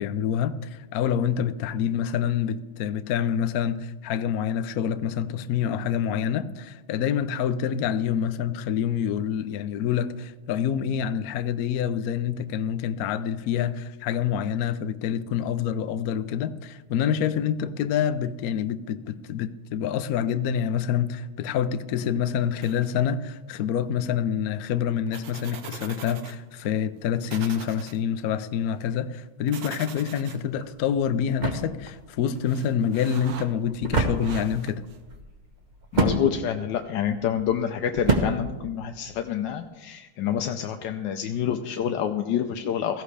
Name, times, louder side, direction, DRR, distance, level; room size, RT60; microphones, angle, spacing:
voice 1, 0.0-34.8, left 8 dB, 85° left, 0.8 m, -27 dB
drawing on paper with pencil paper moving dropping pencil, 22.6-23.1 25.1-26.4 26.7-26.8 27.3-28.0 29.5-30.4 31.9-32.0 32.4-33.5 34.2-35.0, right 7 dB, 65° right, 1.6 m, -42 dB
sound 1, 30.5-39.4, right 2 dB, 30° right, 0.8 m, -30 dB
voice 2, 35.9-43.0, left 9 dB, 70° left, 1.1 m, -27 dB
16.5 x 14.5 x 3.3 m
omnidirectional pair, 2.4 m